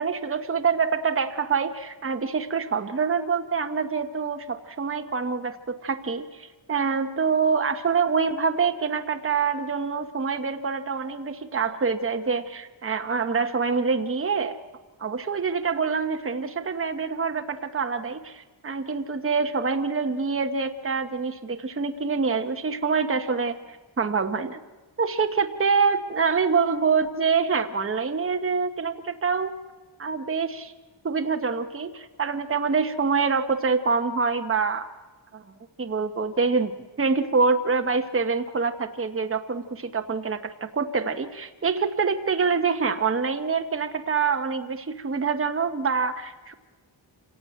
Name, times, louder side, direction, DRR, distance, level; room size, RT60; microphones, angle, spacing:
voice 1, 0.0-14.6 15.0-24.6 25.0-29.5 30.0-30.7 31.0-34.9 35.3-35.4 35.8-36.7 37.0-46.5, right 5 dB, 30° right, 7 dB, 1.0 m, -26 dB
27.0 x 16.0 x 9.1 m, 1.3 s
wide cardioid pair, 160°, 47 cm